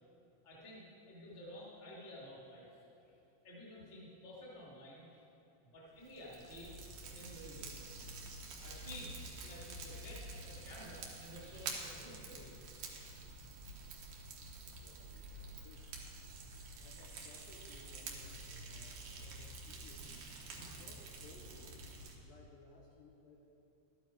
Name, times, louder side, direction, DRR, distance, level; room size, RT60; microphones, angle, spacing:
voice 1, 0.4-3.2 3.4-5.2 5.6-6.7 7.0-7.9 8.6-12.6 15.8-15.9 20.5-20.7, left 1 dB, 20° left, -6 dB, 1.6 m, -52 dB
Fire, 6.0-22.1, right 3 dB, 70° right, 1.8 m, -48 dB
voice 2, 14.7-15.9 16.8-20.1 20.8-21.8 22.2-23.5, left 3 dB, 75° left, -1 dB, 2.1 m, -60 dB
13.0 x 9.9 x 4.5 m, 2.9 s
omnidirectional pair, 5.2 m